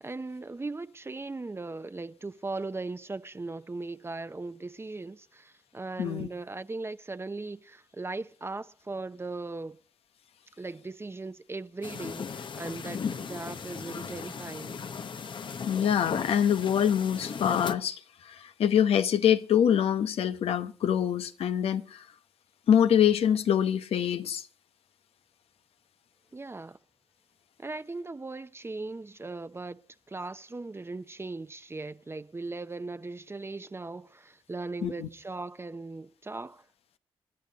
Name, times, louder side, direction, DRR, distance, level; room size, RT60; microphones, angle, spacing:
voice 1, 0.0-9.8 10.6-14.8 26.3-26.8 27.6-36.7, right 3 dB, 25° right, 0.8 m, -38 dB
voice 2, 6.0-6.3 15.6-22.0 22.7-24.5 34.8-35.1, left 9 dB, 75° left, 1.0 m, -25 dB
sound 1, 11.8-17.7, left 6 dB, 55° left, 1.0 m, -37 dB
27.5 x 10.5 x 4.0 m
cardioid pair, 60°, 10 cm